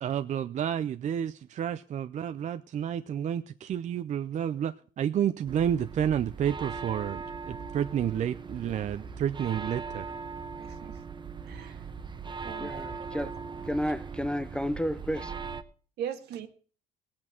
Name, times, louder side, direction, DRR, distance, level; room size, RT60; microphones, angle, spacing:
voice 1, 0.0-10.1, right 9 dB, 45° right, 0.5 m, -30 dB
sound 1, 5.5-15.6, right 5 dB, 25° right, 0.9 m, -40 dB
voice 2, 10.6-11.0 11.4-11.9 12.4-12.8 13.1-13.3 16.0-16.5, right 9 dB, 75° right, 1.7 m, -39 dB
voice 3, 12.4-13.3 13.7-15.3, equal, 5° left, 0.5 m, -32 dB
18.5 x 8.6 x 4.4 m
cardioid pair, 110°, 17 cm